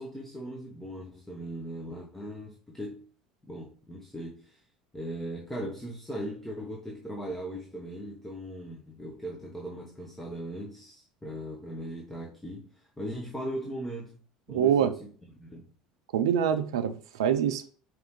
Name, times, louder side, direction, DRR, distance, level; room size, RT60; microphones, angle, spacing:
voice 1, 0.0-3.1 3.4-4.6 4.9-14.2 14.5-15.7, equal, 10° left, 0.9 m, -39 dB
voice 2, 14.5-14.9 16.1-17.7, right 9 dB, 65° right, 0.4 m, -25 dB
4.8 x 3.2 x 3.1 m
figure-of-eight pair, 65°, 3 cm